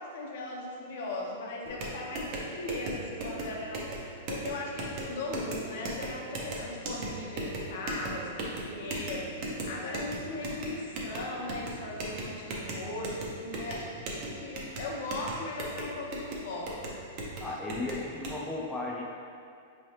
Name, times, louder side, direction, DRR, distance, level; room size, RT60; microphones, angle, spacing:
voice 1, 0.0-13.9 14.3-17.0 17.5-17.6, left 2 dB, 60° left, -1 dB, 0.7 m, -38 dB
sound 1, 1.7-18.4, right 1 dB, 40° right, 0.7 m, -38 dB
voice 2, 17.4-19.0, left 2 dB, 5° left, -5 dB, 0.4 m, -35 dB
4.5 x 3.2 x 2.9 m, 2.3 s
supercardioid pair, 155°, 0 cm